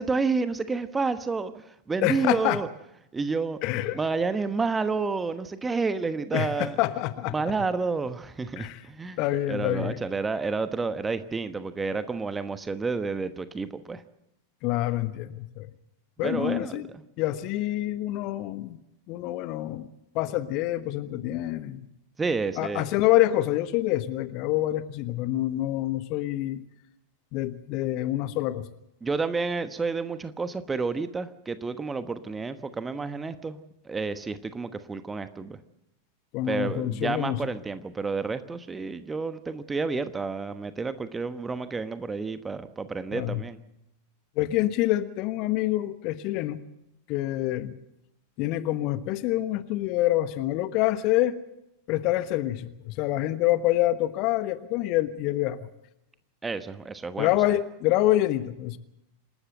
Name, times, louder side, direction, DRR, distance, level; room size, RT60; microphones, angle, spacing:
voice 1, 0.0-2.7 3.1-3.6 3.9-6.8 7.3-9.2 9.5-14.0 16.2-17.0 22.2-22.9 29.0-35.6 36.5-43.6 56.4-57.4, right 4 dB, 15° right, 11 dB, 1.2 m, -30 dB
voice 2, 2.0-2.6 3.6-4.0 6.3-7.3 8.6-8.8 9.2-10.0 14.6-15.7 16.2-16.9 17.2-18.8 19.1-19.9 20.1-21.8 22.6-26.6 27.3-28.7 36.3-37.4 43.1-43.4 44.4-46.6 47.1-47.7 48.4-51.3 51.9-55.7 57.2-58.8, left 15 dB, 40° left, 12 dB, 1.2 m, -26 dB
27.0 x 13.0 x 7.8 m, 0.84 s
figure-of-eight pair, 90°, 0 cm